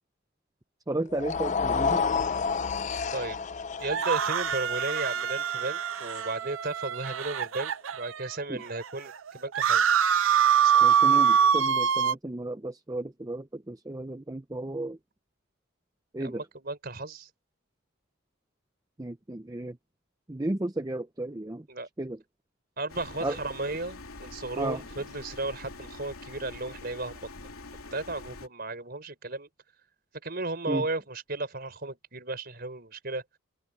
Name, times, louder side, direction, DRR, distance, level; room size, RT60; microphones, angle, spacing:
voice 1, 0.9-2.0 8.5-8.6 10.8-15.0 16.1-16.4 19.0-19.8 20.3-21.6 22.0-22.2 23.2-23.4 24.6-24.8 30.7-30.8, right 2 dB, 15° right, 0.6 m, -33 dB
sound 1, 1.1-7.4, left 5 dB, 35° left, 0.4 m, -31 dB
voice 2, 3.8-9.9 10.6-11.6 16.2-17.3 21.7-21.9 22.8-27.3 27.9-29.5 30.2-33.2, right 2 dB, 45° right, 4.8 m, -35 dB
sound 2, 3.8-8.3 8.8-8.9 9.1-12.1, right 8 dB, 70° right, 0.6 m, -24 dB
sound 3, 22.9-28.5, left 2 dB, 90° left, 3.7 m, -45 dB
open air
head